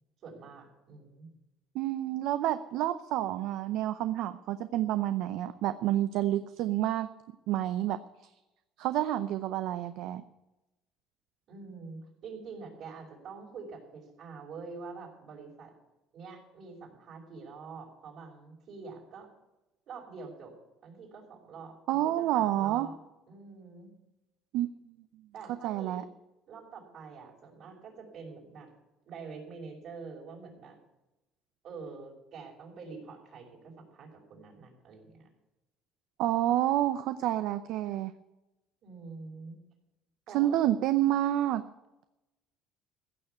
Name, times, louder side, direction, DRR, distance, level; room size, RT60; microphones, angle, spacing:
voice 1, 0.2-1.3 11.5-15.7 16.1-19.3 19.9-20.5 20.8-23.0 23.3-23.9 25.3-26.1 26.5-28.7 29.0-30.8 31.6-35.3 38.8-39.6 40.3-40.6, right 4 dB, 55° right, -2 dB, 5.8 m, -46 dB
voice 2, 1.7-7.1 7.5-8.0 8.8-10.2 21.9-22.9 24.5-24.8 25.6-26.0 36.2-38.1 40.3-41.6, right 13 dB, 70° right, 12 dB, 0.6 m, -29 dB
15.5 x 6.7 x 9.5 m, 0.99 s
cardioid pair, 125°, 0 cm